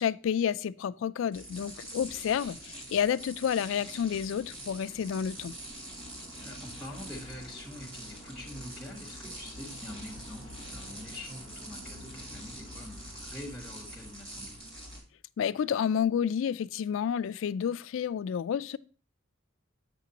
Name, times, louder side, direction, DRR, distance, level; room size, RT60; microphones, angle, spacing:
voice 1, 0.0-5.5 15.4-18.8, left 8 dB, 70° left, 0.3 m, -30 dB
sound 1, 1.3-15.0, right 1 dB, 60° right, 3.8 m, -44 dB
voice 2, 6.4-14.6, left 1 dB, ahead, 1.3 m, -45 dB
8.1 x 7.1 x 2.8 m
head